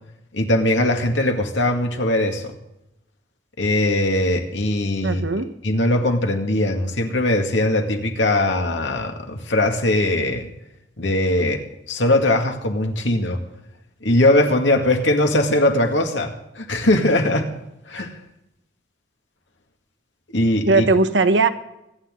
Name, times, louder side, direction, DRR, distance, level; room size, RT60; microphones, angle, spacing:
voice 1, 0.3-2.5 3.6-5.2 5.6-10.5 11.0-13.4 14.0-17.5 17.9-18.1 20.3-20.9, left 1 dB, 90° left, 4 dB, 2.2 m, -20 dB
voice 2, 5.0-5.5 20.6-21.5, right 3 dB, 75° right, 9 dB, 1.1 m, -18 dB
25.5 x 9.6 x 3.8 m, 0.87 s
head